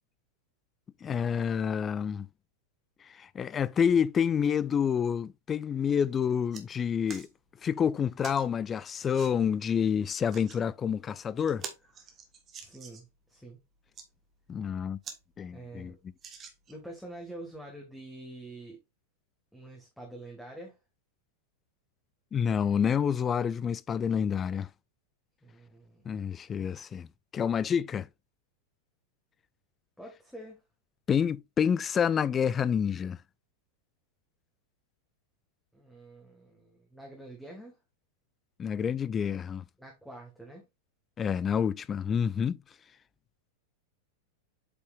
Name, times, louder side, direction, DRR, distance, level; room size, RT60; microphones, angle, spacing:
voice 1, 1.0-2.3 3.2-7.3 7.6-11.6 14.5-15.0 15.4-15.9 22.3-24.7 26.1-27.1 27.3-28.1 31.1-33.2 38.6-39.6 41.2-42.6, left 7 dB, 20° left, 0.4 m, -28 dB
sound 1, 6.5-6.6 7.1-7.3 8.2-8.4 9.1-9.3 10.1-10.6 11.1-11.2 11.5-13.1 13.7-14.1 14.6-14.7 15.0-15.2 15.5-15.6 16.2-16.9 17.5-17.6, right 6 dB, 25° right, 1.5 m, -45 dB
voice 2, 12.6-13.6 15.5-16.0 16.7-18.8 19.5-20.8 25.4-26.1 30.0-30.6 35.7-37.8 39.8-40.7, right 1 dB, ahead, 1.9 m, -46 dB
8.1 x 5.5 x 2.5 m
figure-of-eight pair, 90°, 0 cm